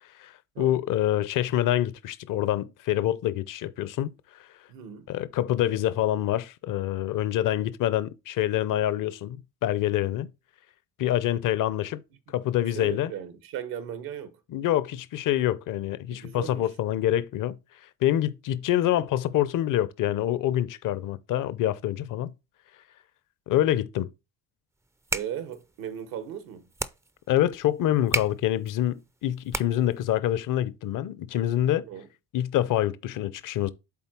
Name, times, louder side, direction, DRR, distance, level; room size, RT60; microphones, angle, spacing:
voice 1, 0.6-4.1 5.1-10.3 11.0-12.0 12.3-13.1 14.5-17.5 18.0-22.3 23.5-24.1 27.3-31.8 32.3-33.7, left 12 dB, 65° left, 0.7 m, -26 dB
voice 2, 4.7-5.1 12.7-14.4 16.1-16.6 25.1-26.7 31.8-32.1, right 9 dB, 80° right, 1.2 m, -37 dB
sound 1, 24.8-30.0, right 2 dB, 10° right, 0.4 m, -35 dB
7.3 x 4.0 x 4.5 m
supercardioid pair, 80°, 35 cm